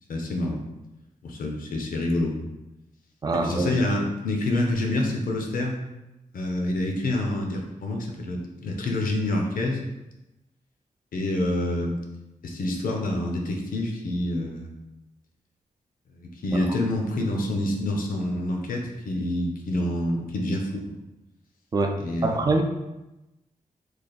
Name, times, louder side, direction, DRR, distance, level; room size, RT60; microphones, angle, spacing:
voice 1, 0.1-0.6 1.2-2.5 3.4-5.8 6.3-9.8 11.1-12.0 12.4-14.8 16.1-21.0 22.0-22.4, left 1 dB, 85° left, 1 dB, 0.6 m, -27 dB
voice 2, 3.2-3.7 21.7-21.9 22.2-22.6, right 3 dB, 30° right, 5 dB, 0.3 m, -23 dB
3.3 x 2.4 x 3.8 m, 0.98 s
wide cardioid pair, 180°, 14 cm